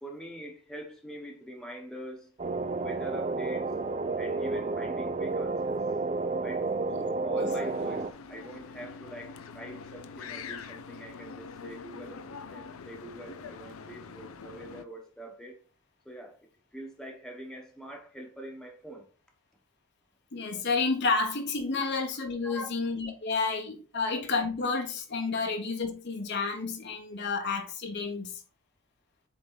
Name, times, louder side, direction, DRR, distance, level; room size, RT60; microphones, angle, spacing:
voice 1, 0.0-2.4 2.7-3.8 4.2-5.8 6.4-6.7 7.0-15.6 16.0-16.4 16.7-19.1 21.8-21.9 22.4-22.7 23.9-24.0, equal, 5° left, 1.2 m, -44 dB
sound 1, 2.4-8.1, right 3 dB, 30° right, 0.5 m, -31 dB
sound 2, 7.5-14.8, left 5 dB, 75° left, 0.5 m, -44 dB
voice 2, 20.3-28.4, left 4 dB, 50° left, 1.0 m, -30 dB
7.9 x 3.8 x 3.9 m
head